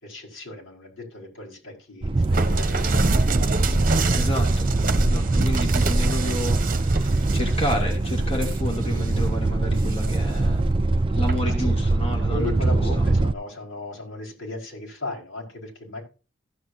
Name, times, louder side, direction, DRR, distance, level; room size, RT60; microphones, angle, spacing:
voice 1, 0.0-3.1 3.6-4.2 5.8-5.9 11.4-11.7 12.2-16.0, left 2 dB, 80° left, -1 dB, 4.8 m, -36 dB
sound 1, 2.0-13.3, right 2 dB, 25° right, 0.4 m, -23 dB
sound 2, 2.3-9.3 9.8-10.4 11.3-11.6, right 2 dB, 45° right, 1.0 m, -27 dB
voice 2, 4.1-10.6 11.1-13.1, equal, 30° left, -1 dB, 2.8 m, -31 dB
15.5 x 8.0 x 2.7 m, 0.34 s
head